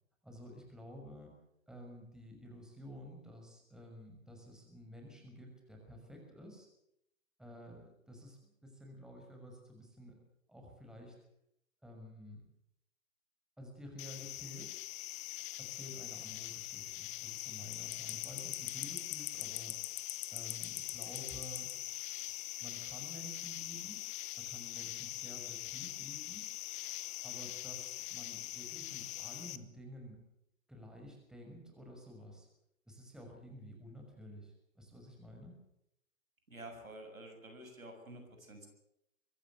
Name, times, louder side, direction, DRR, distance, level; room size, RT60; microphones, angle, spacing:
voice 1, 0.2-1.3 1.7-6.7 7.4-10.2 10.5-11.2 11.8-12.4 13.6-14.8 15.6-19.9 20.3-21.7 22.6-24.0 24.4-26.4 27.2-30.2 30.7-32.5 32.9-35.6, equal, ahead, 1 dB, 6.0 m, -51 dB
sound 1, 14.0-29.6, left 17 dB, 15° left, 0.7 m, -42 dB
voice 2, 36.5-38.7, right 1 dB, 85° right, 5 dB, 7.2 m, -50 dB
24.0 x 15.5 x 8.1 m, 0.78 s
figure-of-eight pair, 120°, 40 cm